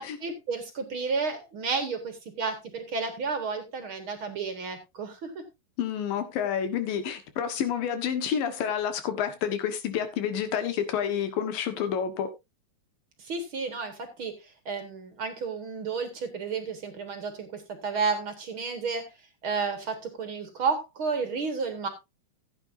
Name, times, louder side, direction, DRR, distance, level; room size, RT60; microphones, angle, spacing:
voice 1, 0.0-5.4 13.2-14.3 14.7-19.1 19.4-21.9, right 4 dB, 50° right, 1.8 m, -32 dB
voice 2, 5.8-12.3, left 8 dB, 90° left, 3.2 m, -29 dB
15.0 x 9.0 x 2.6 m
omnidirectional pair, 3.9 m